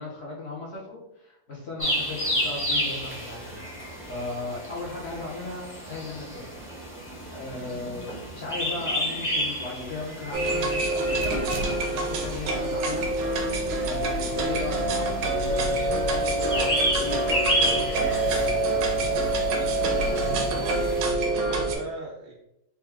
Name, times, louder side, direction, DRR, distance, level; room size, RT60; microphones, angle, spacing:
voice 1, 0.0-3.8 4.1-6.6 7.3-13.1 13.4-18.8, left 2 dB, 55° left, -4 dB, 0.7 m, -37 dB
sound 1, 1.8-21.1, equal, 10° left, 0.7 m, -32 dB
sound 2, 10.3-21.7, right 2 dB, 70° right, 1.2 m, -26 dB
voice 2, 20.1-22.3, right 3 dB, 85° right, -1 dB, 1.4 m, -37 dB
4.5 x 2.3 x 3.4 m, 0.83 s
omnidirectional pair, 2.1 m